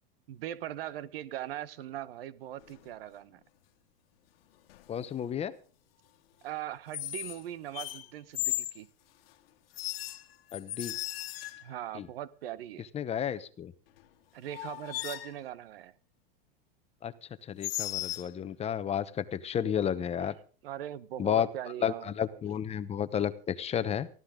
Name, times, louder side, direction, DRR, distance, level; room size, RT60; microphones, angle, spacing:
voice 1, 0.3-3.4 6.4-8.9 11.6-12.9 14.3-15.9 20.2-20.3 20.6-22.4, right 12 dB, 80° right, 1.2 m, -40 dB
sound 1, 2.6-2.9 4.7-5.0 6.9-7.4 7.7-8.8 9.7-11.8 14.0-14.1 14.5-15.4 17.6-18.3, left 15 dB, 80° left, 1.5 m, -36 dB
voice 2, 4.9-5.5 10.5-10.9 11.9-12.1 12.9-13.7 17.0-17.1 17.4-20.3 21.2-21.5 21.8-24.1, left 9 dB, 20° left, 0.9 m, -32 dB
19.5 x 15.0 x 3.8 m
supercardioid pair, 135°, 29 cm